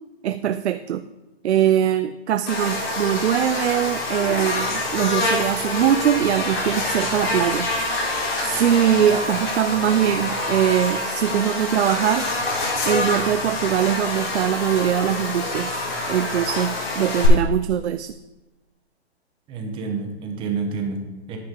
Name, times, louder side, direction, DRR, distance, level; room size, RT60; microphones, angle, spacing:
voice 1, 0.2-1.0 1.4-7.7 8.4-12.3 12.8-18.1, right 10 dB, 90° right, 11 dB, 0.5 m, -22 dB
Buzz, 2.5-17.3, left 2 dB, 65° left, 4.1 m, -26 dB
voice 2, 19.5-21.4, right 4 dB, 15° right, 4 dB, 1.1 m, -29 dB
9.7 x 9.4 x 3.8 m, 1.0 s
hypercardioid pair, 160°, 32 cm